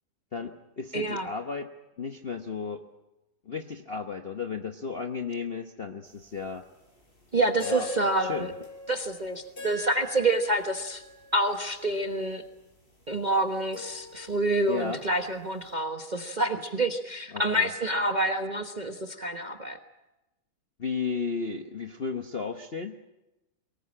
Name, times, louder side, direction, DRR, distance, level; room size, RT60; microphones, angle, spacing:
voice 1, 0.3-1.7 2.0-2.8 3.5-6.6 7.6-7.9 8.2-8.5 14.7-15.0 17.3-17.7 20.8-23.0, left 5 dB, 40° left, 5 dB, 0.8 m, -34 dB
voice 2, 0.9-1.3 7.3-8.5 8.9-11.0 11.3-12.4 13.1-19.8, right 2 dB, 30° right, 5 dB, 0.9 m, -27 dB
sound 1, 6.2-6.3 7.6-12.5 13.7-15.3, left 1 dB, 25° left, 4.8 m, -42 dB
23.0 x 19.5 x 8.7 m, 0.98 s
omnidirectional pair, 2.3 m